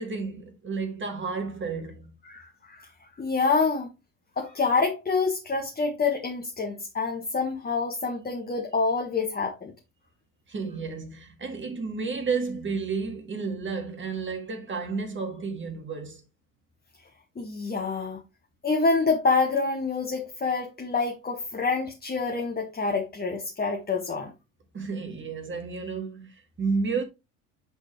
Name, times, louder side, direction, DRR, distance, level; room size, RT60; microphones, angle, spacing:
voice 1, 0.0-2.1 10.5-16.2 24.7-27.0, right 4 dB, 25° right, 1.8 m, -31 dB
voice 2, 2.2-2.9 3.2-3.9 4.4-9.7 17.3-18.2 18.6-24.3, left 4 dB, 20° left, 1.5 m, -27 dB
8.1 x 4.3 x 3.2 m
hypercardioid pair, 65°, 43 cm